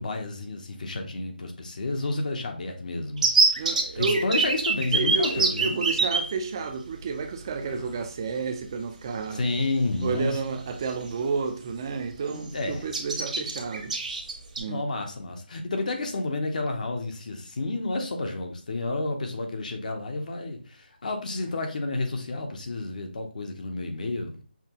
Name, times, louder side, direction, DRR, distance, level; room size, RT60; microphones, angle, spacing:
voice 1, 0.0-3.5 3.9-5.8 7.6-7.9 9.3-10.4 12.3-12.8 14.7-24.4, left 2 dB, 50° left, 0.7 m, -30 dB
sound 1, 3.2-6.2 7.2-7.3 7.6-7.8 9.4-9.5 10.0-10.2 10.6-11.4 11.7-11.9 12.1-12.5 12.9-14.6, right 4 dB, 45° right, 0.9 m, -24 dB
voice 2, 3.6-4.3 4.9-9.4 10.0-14.0 14.6-14.8, right 5 dB, 25° right, 0.4 m, -31 dB
5.7 x 2.2 x 2.8 m
figure-of-eight pair, 165°, 6 cm